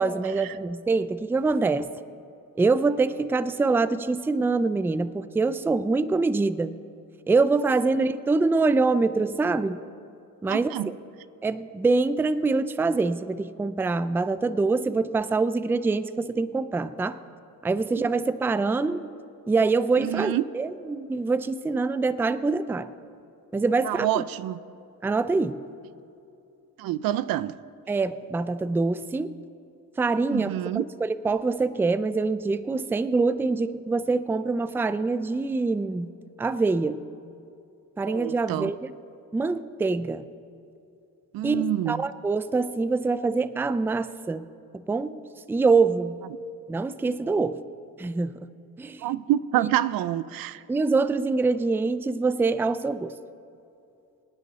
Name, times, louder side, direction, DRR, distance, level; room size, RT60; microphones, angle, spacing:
voice 1, 0.0-1.9 2.6-6.8 7.3-9.8 10.4-11.0 11.4-17.2 17.6-19.1 19.5-22.9 23.5-24.2 25.0-25.6 27.9-29.3 30.0-36.1 36.4-37.0 38.0-38.9 39.3-40.3 41.4-44.5 44.7-45.2 45.5-46.2 46.7-47.6 48.0-48.5 48.8-49.1 49.6-49.7 50.7-53.1, right 3 dB, 5° right, 14 dB, 0.3 m, -25 dB
voice 2, 10.5-10.9 18.0-18.1 20.0-20.4 23.8-24.6 26.8-27.6 30.3-30.8 38.1-38.7 41.3-42.0 49.0-50.6, right 13 dB, 80° right, 17 dB, 0.5 m, -27 dB
24.5 x 9.7 x 4.0 m, 2.6 s
cardioid pair, 100°, 35 cm